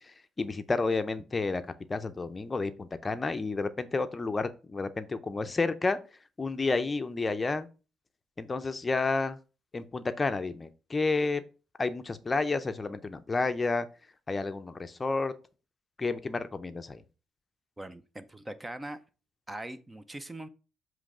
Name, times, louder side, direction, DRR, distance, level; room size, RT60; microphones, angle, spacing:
voice 1, 0.1-1.6 1.9-6.0 6.4-7.7 8.4-9.4 9.7-11.4 11.8-13.9 14.3-15.3 16.0-17.0, left 3 dB, 25° left, 0.6 m, -30 dB
voice 2, 17.8-19.0 19.5-20.5, right 1 dB, 15° right, 0.6 m, -41 dB
7.4 x 3.2 x 4.9 m
cardioid pair, 90°, 0 cm